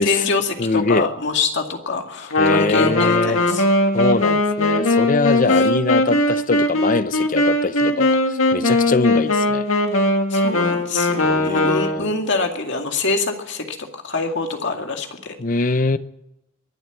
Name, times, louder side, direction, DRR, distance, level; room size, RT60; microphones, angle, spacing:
voice 1, 0.0-3.6 10.3-15.4, left 3 dB, 60° left, 2.2 m, -25 dB
voice 2, 0.6-1.1 2.4-3.4 3.9-9.6 11.2-12.1 15.4-16.0, left 3 dB, 40° left, 0.6 m, -22 dB
Wind instrument woodwind instrument, 2.3-12.2, left 2 dB, 85° left, 2.0 m, -19 dB
22.5 x 7.7 x 8.0 m
head